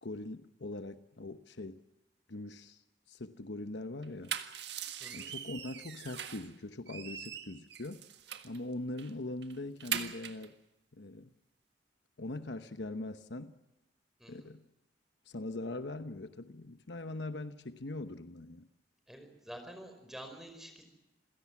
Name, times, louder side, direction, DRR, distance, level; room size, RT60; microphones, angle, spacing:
voice 1, 0.0-1.8 2.3-2.8 3.1-4.4 5.1-8.0 8.4-10.5 10.9-11.3 12.2-13.6 14.3-14.6 15.3-18.7, left 2 dB, 70° left, 1.0 m, -42 dB
sound 1, 4.0-6.5 6.9-8.6 9.0-9.1 9.4-10.5, right 9 dB, 65° right, 1.6 m, -41 dB
voice 2, 5.0-5.3 14.2-14.5 19.1-20.8, right 1 dB, ahead, 5.0 m, -48 dB
28.0 x 17.0 x 7.3 m
head